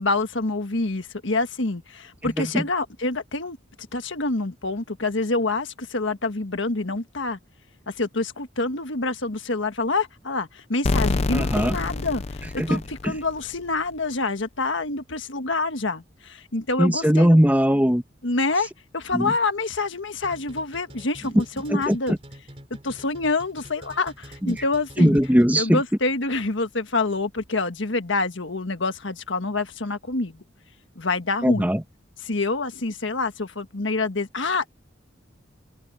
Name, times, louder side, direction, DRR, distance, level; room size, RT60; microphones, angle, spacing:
voice 1, 0.0-3.6 3.9-7.4 7.9-17.4 18.2-22.2 22.8-25.2 25.6-30.4 30.9-31.7 32.2-34.7, left 3 dB, 70° left, 1.6 m, -27 dB
voice 2, 2.2-2.6 11.3-11.7 12.6-13.1 16.8-18.0 19.1-19.3 21.7-22.2 24.4-24.6 25.0-25.8 31.4-31.8, equal, 10° right, 1.4 m, -20 dB
sound 1, 10.8-13.6, left 2 dB, 30° left, 0.5 m, -26 dB
sound 2, 20.2-25.8, right 1 dB, 30° right, 3.1 m, -45 dB
head